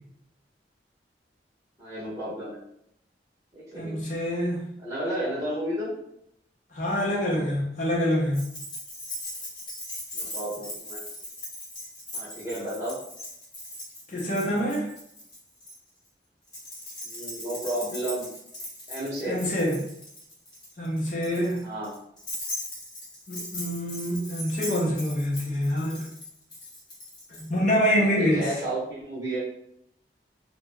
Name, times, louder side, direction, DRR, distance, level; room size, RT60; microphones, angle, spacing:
voice 1, 1.8-2.6 3.5-4.0 4.8-5.9 10.1-11.0 12.1-13.0 17.0-18.3 18.9-19.4 21.6-21.9 28.0-29.4, right 1 dB, 20° right, -10 dB, 0.8 m, -32 dB
voice 2, 3.7-4.6 6.7-8.4 14.1-14.9 19.3-19.9 20.8-21.6 23.3-26.0 27.4-28.4, equal, 45° left, -4 dB, 0.6 m, -26 dB
Keys jangling, 8.3-15.7 16.5-27.5, left 1 dB, 25° left, 0.9 m, -39 dB
2.3 x 2.1 x 3.2 m, 0.74 s
head